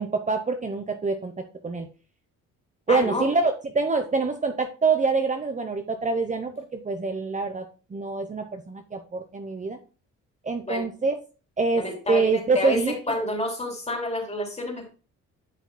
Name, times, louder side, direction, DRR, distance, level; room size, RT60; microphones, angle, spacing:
voice 1, 0.0-1.3 1.6-1.9 2.9-7.6 7.9-9.8 10.4-11.1 11.6-13.2, right 4 dB, 25° right, 5 dB, 0.9 m, -25 dB
voice 2, 2.9-3.2 10.6-10.9 11.7-12.8 13.1-14.9, left 2 dB, 20° left, 1 dB, 3.1 m, -29 dB
10.5 x 5.8 x 2.2 m, 0.34 s
cardioid pair, 90°, 30 cm